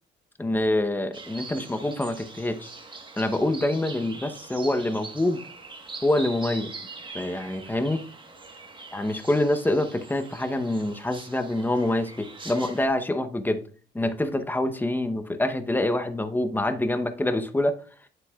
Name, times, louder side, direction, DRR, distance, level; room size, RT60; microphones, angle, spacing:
voice 1, 0.4-2.7 3.2-5.4 6.0-6.7 7.1-8.0 8.9-13.6 13.9-17.8, left 1 dB, 10° left, 8 dB, 0.9 m, -26 dB
sound 1, 1.1-12.9, right 3 dB, 25° right, 1.4 m, -43 dB
9.1 x 7.7 x 2.4 m, 0.40 s
cardioid pair, 90°, 20 cm